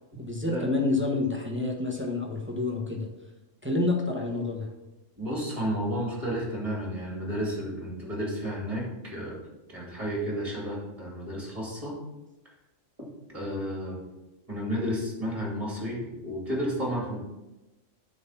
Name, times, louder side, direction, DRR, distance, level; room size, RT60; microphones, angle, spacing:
voice 1, 0.2-3.1 3.6-4.7, left 2 dB, 10° right, 0 dB, 1.0 m, -28 dB
voice 2, 5.2-9.4 9.7-12.0 13.3-14.0 14.5-17.2, equal, 25° right, -3 dB, 2.6 m, -32 dB
9.2 x 4.1 x 5.7 m, 1.0 s
omnidirectional pair, 1.3 m